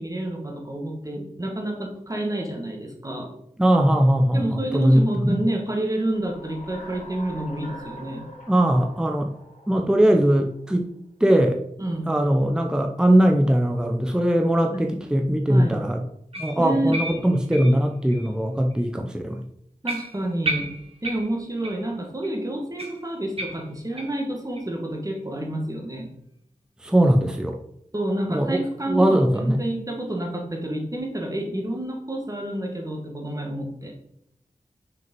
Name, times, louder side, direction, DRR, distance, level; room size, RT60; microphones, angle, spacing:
voice 1, 0.0-3.3 4.3-8.2 11.8-12.1 14.7-14.9 15.5-15.8 16.6-17.0 19.8-20.7 21.0-26.1 27.9-33.9, right 1 dB, 25° right, 1 dB, 1.6 m, -29 dB
voice 2, 3.6-5.4 8.5-9.3 9.7-10.8 11.2-11.6 12.1-16.0 16.4-19.5 26.8-27.6 28.3-28.6 28.9-29.6, right 1 dB, 5° right, 3 dB, 0.7 m, -20 dB
sound 1, 5.9-10.6, equal, 60° left, 3.2 m, -44 dB
sound 2, 16.3-18.3 18.7-18.9 19.3-19.4 19.8-21.9 22.2-22.3 22.8-24.2 24.5-24.7 25.1-25.2 25.7-25.8, right 1 dB, 45° right, 1.7 m, -34 dB
6.3 x 5.3 x 5.3 m, 0.75 s
wide cardioid pair, 85°, 14 cm